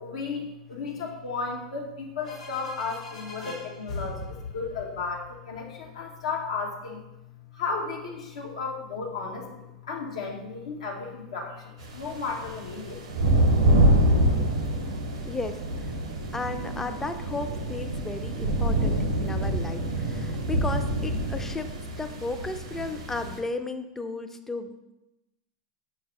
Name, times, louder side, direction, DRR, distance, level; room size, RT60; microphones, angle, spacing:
voice 1, 0.0-7.0 7.5-13.0, left 4 dB, 75° left, -1 dB, 0.7 m, -34 dB
sound 1, 2.2-5.9, left 3 dB, 90° left, 1.5 m, -40 dB
sound 2, 11.8-23.4, right 1 dB, 75° right, 0.7 m, -26 dB
voice 2, 15.2-15.9 16.3-24.9, left 3 dB, 10° left, 8 dB, 0.3 m, -34 dB
5.8 x 2.7 x 2.9 m, 0.94 s
hypercardioid pair, 95°, 3 cm